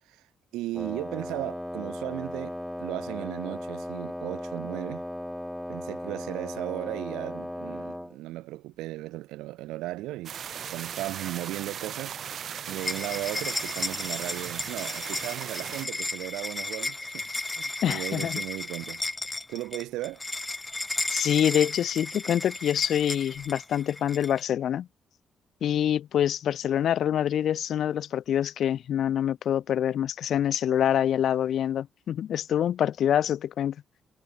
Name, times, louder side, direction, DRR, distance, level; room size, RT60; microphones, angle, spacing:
voice 1, 0.5-5.0 5.7-10.4 10.7-19.0 19.5-20.2, right 17 dB, 85° right, 0.8 m, -36 dB
Wind instrument woodwind instrument, 0.7-8.2, equal, 5° left, 2.7 m, -36 dB
sound 1, 10.2-15.8, right 8 dB, 65° right, 2.1 m, -37 dB
sound 2, 12.8-24.4, left 2 dB, 20° left, 1.1 m, -34 dB
voice 2, 17.8-18.4 21.1-24.9 25.6-33.8, left 10 dB, 70° left, 0.4 m, -26 dB
supercardioid pair, 55°, 0 cm